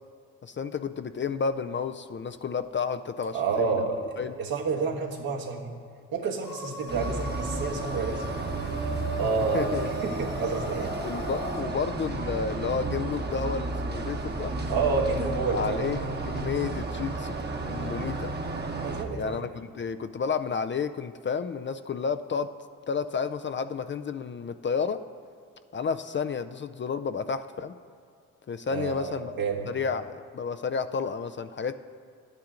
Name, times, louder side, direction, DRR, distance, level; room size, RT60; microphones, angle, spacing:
voice 1, 0.4-3.8 4.2-4.3 7.1-7.2 9.5-9.9 11.0-14.5 15.5-16.0 16.2-17.4 17.6-18.3 19.2-22.5 22.9-25.0 25.7-27.8 28.5-29.3 29.7-31.7, left 5 dB, 30° left, 10 dB, 0.4 m, -31 dB
voice 2, 3.3-5.7 6.1-8.9 9.2-10.9 14.7-15.9 18.8-19.4 28.7-29.7, right 4 dB, 70° right, 0 dB, 1.5 m, -29 dB
sound 1, 6.4-11.6, left 1 dB, 80° left, 2.0 m, -38 dB
sound 2, 6.9-19.0, right 3 dB, 25° right, 1.0 m, -33 dB
11.5 x 8.9 x 3.8 m, 2.3 s
supercardioid pair, 50°, 37 cm